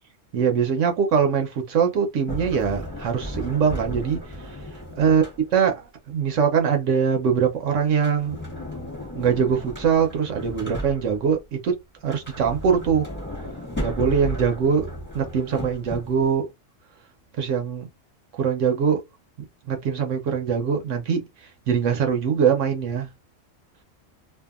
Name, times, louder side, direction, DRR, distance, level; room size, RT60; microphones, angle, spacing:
voice 1, 0.3-4.6 5.0-5.2 5.5-5.8 6.1-8.4 9.1-13.1 13.8-16.5 17.4-17.9 18.4-19.0 19.7-23.1, right 7 dB, 75° right, 1.0 m, -22 dB
Sliding door, 2.3-5.8 7.9-11.4 12.0-16.3, equal, 10° left, 1.3 m, -35 dB
2.7 x 2.5 x 2.3 m
omnidirectional pair, 1.3 m